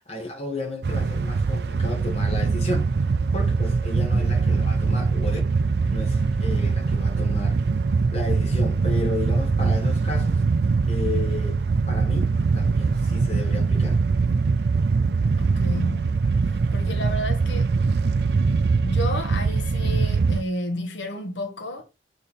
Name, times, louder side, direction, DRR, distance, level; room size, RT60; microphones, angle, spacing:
voice 1, 0.1-2.9 3.3-5.6 5.9-7.6 8.1-10.4 10.9-14.0, left 2 dB, 35° left, 1.8 m, -32 dB
autopista regional del centro viento fuerte carros, 0.8-20.4, right 4 dB, 60° right, 0.4 m, -22 dB
voice 2, 15.4-16.2 16.7-17.7 18.8-21.8, left 1 dB, 85° left, 1.1 m, -31 dB
6.9 x 3.8 x 4.2 m
head